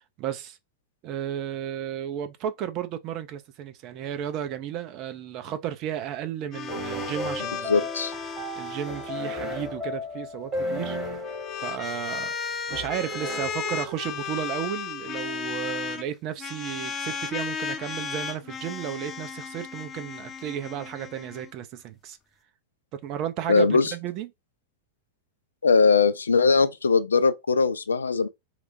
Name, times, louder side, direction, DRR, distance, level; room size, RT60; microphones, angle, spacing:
voice 1, 0.2-0.6 1.0-7.9 8.6-11.0 11.6-12.4 12.7-22.2 22.9-24.3, right 10 dB, 40° right, 0.5 m, -33 dB
sound 1, 6.5-9.7 11.1-16.0 16.4-21.5, left 6 dB, 20° left, 0.6 m, -35 dB
sound 2, 6.7-14.4, left 1 dB, 25° right, 1.2 m, -35 dB
voice 2, 7.7-8.1 23.5-23.9 25.6-28.3, left 4 dB, 75° left, 0.4 m, -20 dB
2.9 x 2.1 x 3.9 m
figure-of-eight pair, 90°, 0 cm